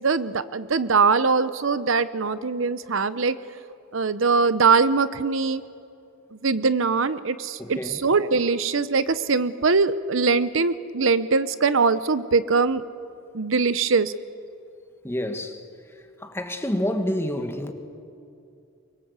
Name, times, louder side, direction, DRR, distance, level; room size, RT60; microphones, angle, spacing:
voice 1, 0.0-3.4 3.9-5.6 6.4-12.8 13.3-14.1, right 4 dB, 70° right, 0.8 m, -22 dB
voice 2, 7.6-8.0 15.0-15.6 15.9-17.7, left 1 dB, 10° left, 1.6 m, -28 dB
24.5 x 22.0 x 8.2 m
head